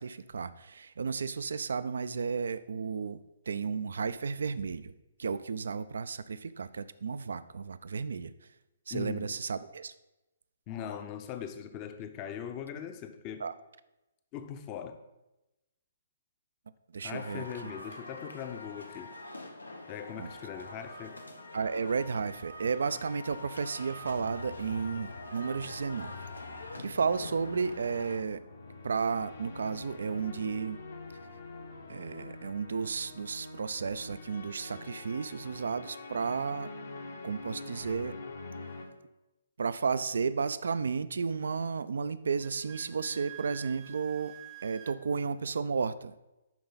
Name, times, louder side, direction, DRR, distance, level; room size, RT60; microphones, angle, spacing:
voice 1, 0.0-3.2 3.5-4.9 5.2-8.3 8.9-9.9 13.4-13.5 16.9-17.7 20.2-20.3 21.5-26.2 26.8-28.4 28.8-30.8 31.9-36.7 37.2-38.1 39.6-44.3 44.6-46.1, right 5 dB, 65° right, 15 dB, 0.4 m, -33 dB
voice 2, 8.9-9.3 10.7-13.5 14.3-15.0 17.0-19.1 19.8-21.2, left 9 dB, 30° left, 8 dB, 0.7 m, -40 dB
sound 1, 17.1-28.2, left 2 dB, 85° left, 0.8 m, -45 dB
sound 2, 24.0-38.9, left 3 dB, 65° left, 1.1 m, -46 dB
Wind instrument woodwind instrument, 42.4-45.0, right 14 dB, 30° right, 0.6 m, -48 dB
10.5 x 3.9 x 3.9 m, 0.98 s
figure-of-eight pair, 130°, 0 cm